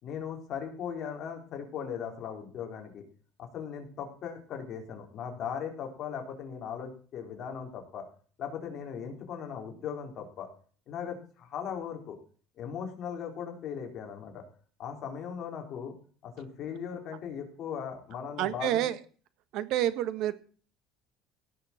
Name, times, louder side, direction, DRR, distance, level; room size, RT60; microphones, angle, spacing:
voice 1, 0.0-3.0 3.4-8.0 8.4-10.5 10.9-12.2 12.6-14.4 14.8-15.9 16.2-18.8, left 7 dB, 45° left, 2 dB, 4.2 m, -38 dB
voice 2, 18.4-19.0 19.5-20.3, right 12 dB, 60° right, 12 dB, 1.6 m, -28 dB
17.0 x 7.2 x 7.3 m, 0.41 s
cardioid pair, 150°, 0 cm